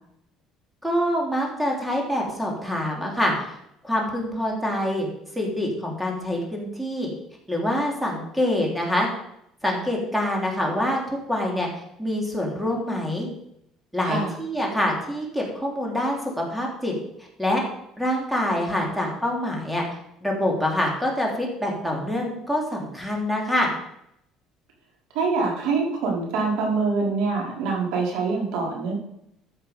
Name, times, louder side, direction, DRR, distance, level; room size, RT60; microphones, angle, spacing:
voice 1, 0.8-3.6 3.8-5.1 5.3-7.1 7.5-9.1 9.6-11.7 12.0-13.3 13.9-16.9 17.4-17.6 18.0-19.8 20.2-23.7, left 1 dB, ahead, -1 dB, 3.0 m, -25 dB
voice 2, 25.1-28.9, right 4 dB, 85° right, -1 dB, 4.4 m, -25 dB
13.5 x 8.1 x 5.1 m, 0.77 s
cardioid pair, 135°, 0 cm